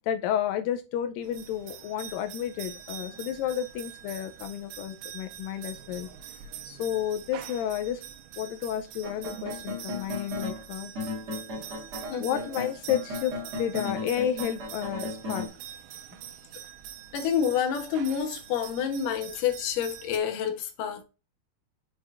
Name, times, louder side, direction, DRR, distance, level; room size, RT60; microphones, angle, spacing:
voice 1, 0.1-6.1 6.7-8.0 8.4-10.9 12.1-15.5, left 10 dB, 90° left, 2.0 m, -31 dB
sound 1, 1.2-20.2, right 10 dB, 85° right, 2.7 m, -44 dB
sound 2, 9.0-10.6 11.0-15.5, left 2 dB, 50° right, 1.2 m, -35 dB
voice 2, 17.1-21.0, left 8 dB, 70° left, 2.3 m, -28 dB
6.3 x 6.0 x 2.5 m
omnidirectional pair, 4.6 m